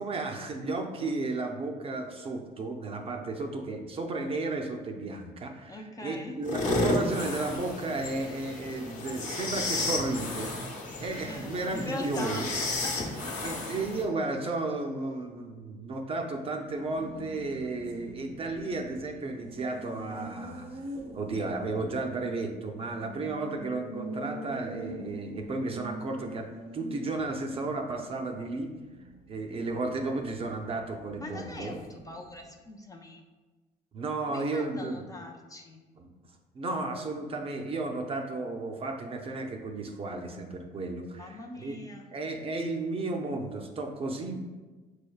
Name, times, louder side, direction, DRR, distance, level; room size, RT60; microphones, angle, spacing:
voice 1, 0.0-12.5 13.4-20.8 21.1-28.7 29.3-31.8 33.9-35.0 36.0-36.1 36.5-41.8 42.1-44.4, right 3 dB, 35° right, 4 dB, 0.5 m, -33 dB
voice 2, 5.7-6.4 11.2-13.5 31.2-33.2 34.3-35.8 41.1-42.1, left 2 dB, 20° left, 3 dB, 0.4 m, -41 dB
sound 1, 6.4-14.0, left 2 dB, 50° left, 0.9 m, -32 dB
Race car auto racing, 16.5-32.7, right 1 dB, 85° right, 0.9 m, -45 dB
6.1 x 3.2 x 2.3 m, 1.3 s
cardioid pair, 110°, 17 cm